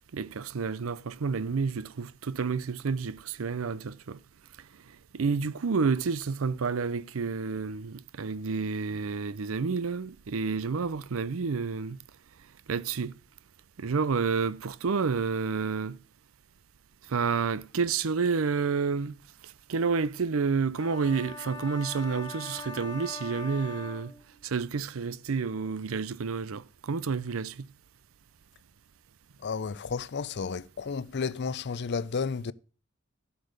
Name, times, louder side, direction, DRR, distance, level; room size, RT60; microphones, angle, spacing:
voice 1, 0.1-4.2 5.1-12.0 12.7-13.1 13.8-16.0 17.1-19.1 19.4-24.1 24.4-27.7, right 5 dB, 75° right, 0.6 m, -30 dB
sound 1, 20.8-24.7, left 3 dB, 20° left, 1.9 m, -42 dB
voice 2, 29.4-32.5, left 5 dB, 55° left, 0.5 m, -32 dB
13.5 x 6.8 x 6.6 m
head